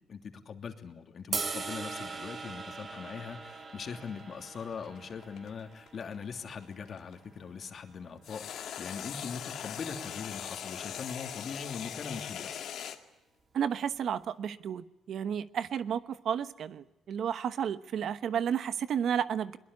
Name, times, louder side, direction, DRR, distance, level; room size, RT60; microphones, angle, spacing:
voice 1, 0.1-12.6, left 6 dB, 50° left, 5 dB, 2.9 m, -41 dB
sound 1, 1.3-7.6, right 4 dB, 45° right, 3.7 m, -41 dB
sound 2, 1.9-7.1 8.2-13.0, left 9 dB, 75° left, 2.2 m, -41 dB
voice 2, 13.5-19.6, right 8 dB, 65° right, 13 dB, 1.0 m, -32 dB
22.0 x 21.5 x 9.9 m, 0.88 s
cardioid pair, 90°, 0 cm